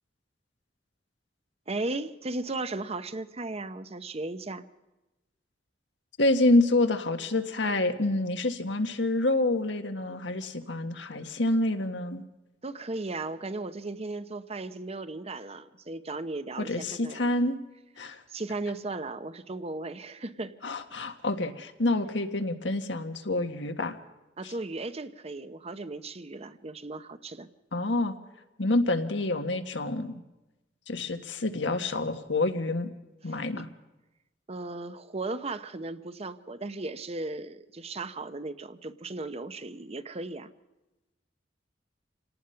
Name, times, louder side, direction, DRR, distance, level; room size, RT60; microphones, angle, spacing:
voice 1, 1.7-4.7 12.6-17.3 18.3-20.5 24.4-27.5 33.3-33.6 34.5-40.5, right 2 dB, 35° right, 12 dB, 0.9 m, -36 dB
voice 2, 6.2-12.2 16.6-17.6 18.0-18.2 20.6-24.0 24.4-24.5 27.7-28.2 28.6-30.2 30.9-32.9 33.2-33.7, left 2 dB, 80° left, 7 dB, 1.6 m, -27 dB
27.5 x 18.0 x 5.7 m, 1.0 s
head